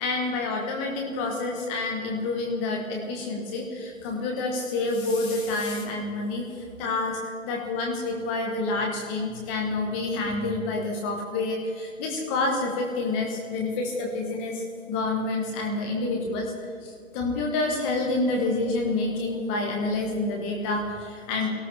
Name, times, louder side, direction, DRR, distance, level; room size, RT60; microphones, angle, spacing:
voice 1, 0.0-6.4 6.8-7.2 7.4-16.5 16.8-21.5, left 2 dB, 10° left, 1 dB, 1.0 m, -28 dB
23.0 x 17.5 x 3.3 m, 2.3 s
figure-of-eight pair, 155°, 40 cm